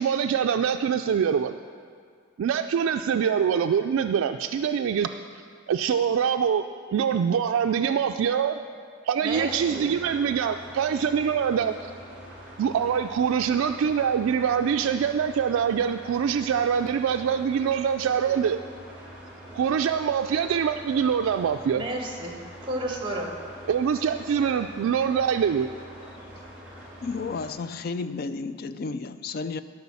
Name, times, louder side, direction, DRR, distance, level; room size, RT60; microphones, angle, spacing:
voice 1, 0.0-1.6 2.4-5.1 5.7-6.6 6.9-8.6 9.0-11.7 12.6-18.6 19.5-21.8 23.7-25.7, right 7 dB, 90° right, 6 dB, 0.3 m, -24 dB
voice 2, 9.2-9.9 18.3-18.4 21.7-22.3 22.6-23.3, right 1 dB, 25° right, 1 dB, 1.3 m, -32 dB
sound 1, 9.3-27.5, equal, 5° right, 2.3 m, -45 dB
voice 3, 27.0-29.6, left 4 dB, 50° left, 12 dB, 0.3 m, -32 dB
12.5 x 5.3 x 7.0 m, 2.2 s
head